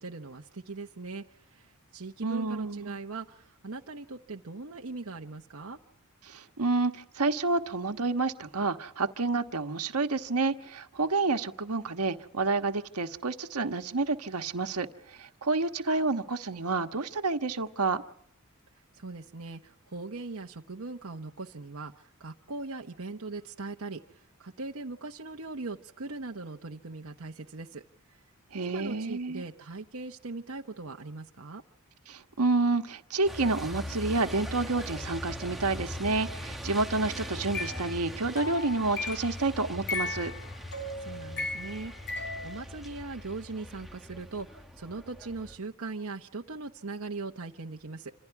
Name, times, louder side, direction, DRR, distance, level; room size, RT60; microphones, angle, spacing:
voice 1, 0.0-5.8 18.9-27.8 28.6-31.6 41.0-48.1, right 3 dB, 65° right, 2 dB, 1.0 m, -40 dB
voice 2, 2.2-3.0 6.2-18.0 28.5-29.4 32.1-40.3, right 3 dB, 85° right, 7 dB, 1.4 m, -29 dB
Truck, 33.2-45.5, left 1 dB, ahead, 1.5 m, -41 dB
sound 1, 37.2-39.4 39.9-42.6, left 3 dB, 50° left, 4.2 m, -37 dB
28.5 x 26.5 x 4.7 m, 0.67 s
head